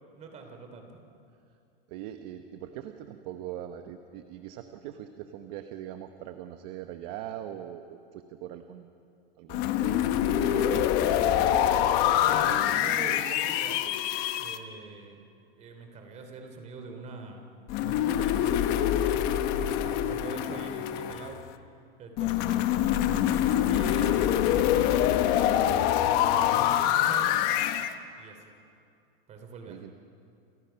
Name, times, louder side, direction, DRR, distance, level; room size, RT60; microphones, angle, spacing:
voice 1, 0.1-1.0 11.4-11.9 12.3-14.0 14.4-15.2 15.6-17.4 17.8-18.5 19.6-21.4 22.0-24.3 24.9-27.4 28.2-28.4 29.3-29.9, right 4 dB, 20° right, 4 dB, 3.2 m, -43 dB
voice 2, 1.9-8.9 9.4-10.7 11.0-11.5 29.7-29.9, right 11 dB, 40° right, 7 dB, 1.1 m, -41 dB
sound 1, 9.5-14.6 17.7-21.5 22.2-27.9, left 11 dB, 35° left, 1.0 m, -25 dB
29.5 x 28.5 x 5.8 m, 2.5 s
supercardioid pair, 165°, 31 cm